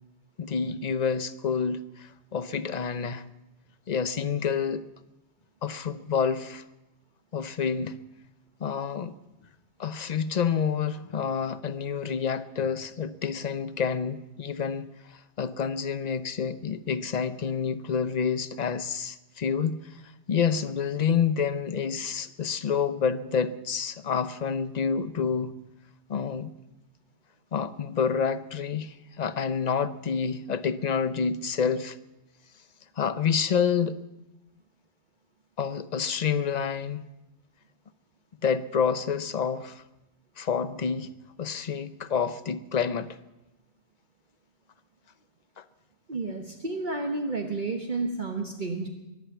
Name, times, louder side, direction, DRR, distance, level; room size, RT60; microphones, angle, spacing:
voice 1, 0.4-3.2 3.9-4.8 5.6-6.6 7.3-8.0 8.6-9.1 9.8-20.0 20.3-25.5 26.1-26.5 27.5-32.0 33.0-34.0 35.6-37.0 38.4-39.8 40.4-41.1 41.4-43.2 45.6-45.7, left 6 dB, 45° left, 0.7 m, -28 dB
voice 2, 46.1-48.9, right 3 dB, 45° right, 1.3 m, -31 dB
22.5 x 8.9 x 7.3 m
omnidirectional pair, 1.2 m